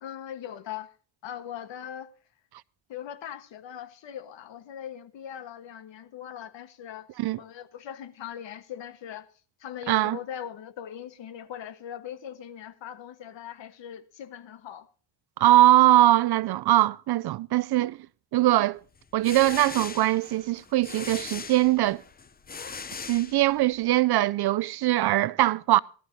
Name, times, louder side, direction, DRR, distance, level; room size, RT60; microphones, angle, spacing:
voice 1, 0.0-0.9 1.2-2.1 2.9-7.1 7.4-9.3 9.6-14.9, left 10 dB, 65° left, 1.4 m, -40 dB
voice 2, 9.9-10.2 15.4-18.0 18.3-18.8 19.1-22.0 23.1-25.8, right 15 dB, 55° right, 0.5 m, -21 dB
sound 1, 19.0-23.8, left 5 dB, 20° left, 0.6 m, -40 dB
17.5 x 12.5 x 2.7 m
cardioid pair, 145°, 47 cm